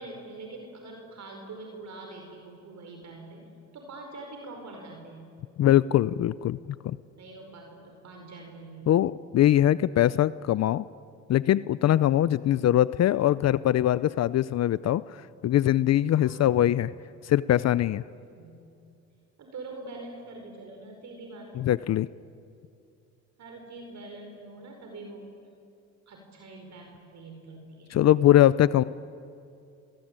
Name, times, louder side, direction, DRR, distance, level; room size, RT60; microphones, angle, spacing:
voice 1, 0.0-3.4 3.7-5.3 7.1-8.9 16.2-16.5 18.2-18.6 19.4-21.7 23.4-25.3 26.1-28.0, right 2 dB, 65° right, 2 dB, 5.1 m, -44 dB
voice 2, 5.6-6.6 6.8-7.0 8.9-10.8 11.3-16.9 17.2-18.0 21.6-22.1 27.9-28.8, left 12 dB, 60° left, 17 dB, 0.6 m, -22 dB
27.5 x 22.0 x 9.0 m, 2.6 s
cardioid pair, 90°, 30 cm